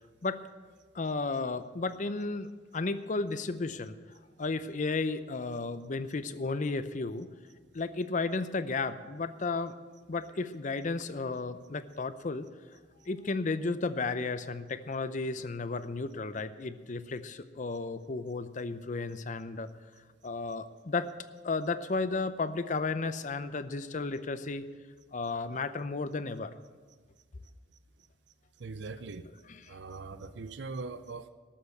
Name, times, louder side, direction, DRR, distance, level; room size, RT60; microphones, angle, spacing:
voice 1, 0.9-4.0 4.4-7.3 7.7-9.7 10.1-12.5 13.0-19.7 20.2-21.1 21.4-24.7 25.1-26.5 29.5-30.0, left 3 dB, 45° left, 12 dB, 0.6 m, -33 dB
voice 2, 28.6-29.3 29.7-31.3, right 3 dB, 85° right, 11 dB, 0.6 m, -41 dB
13.0 x 6.9 x 8.4 m, 1.4 s
head